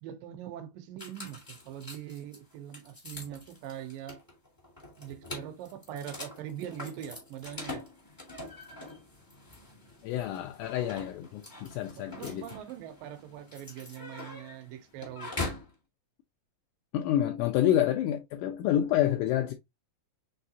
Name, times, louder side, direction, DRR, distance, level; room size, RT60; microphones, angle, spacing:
voice 1, 0.0-4.2 5.0-7.8 12.0-15.4, right 10 dB, 75° right, 2.4 m, -42 dB
sound 1, 1.0-15.7, left 2 dB, 35° left, 0.3 m, -43 dB
voice 2, 10.0-12.5 16.9-19.5, left 11 dB, 90° left, 1.7 m, -28 dB
5.6 x 3.2 x 2.7 m
omnidirectional pair, 4.1 m